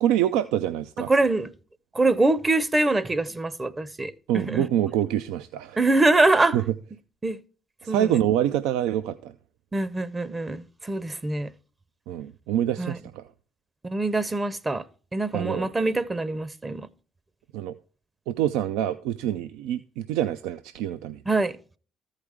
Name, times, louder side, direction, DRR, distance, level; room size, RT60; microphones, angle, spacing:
voice 1, 0.0-1.1 4.3-5.8 6.5-6.6 7.8-9.3 12.1-13.3 15.3-15.7 17.5-17.7 18.3-21.2, right 11 dB, 75° right, 0.3 m, -26 dB
voice 2, 1.1-1.5 1.9-4.7 5.8-6.6 7.2-7.4 7.9-8.2 9.7-11.5 12.8-13.0 13.8-14.8 15.1-16.9 21.3-21.6, right 2 dB, 25° right, 0.6 m, -24 dB
14.0 x 4.9 x 3.5 m
hypercardioid pair, 50°, 0 cm